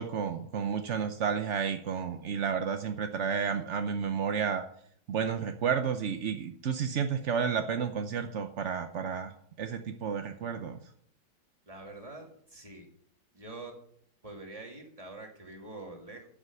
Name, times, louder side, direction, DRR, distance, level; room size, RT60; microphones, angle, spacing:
voice 1, 0.0-4.6 5.1-10.8, right 7 dB, 60° right, 7 dB, 0.7 m, -31 dB
voice 2, 11.7-12.9 13.3-13.7 14.2-16.3, right 2 dB, 20° right, 1 dB, 2.3 m, -45 dB
12.0 x 7.5 x 6.6 m, 0.64 s
omnidirectional pair, 2.1 m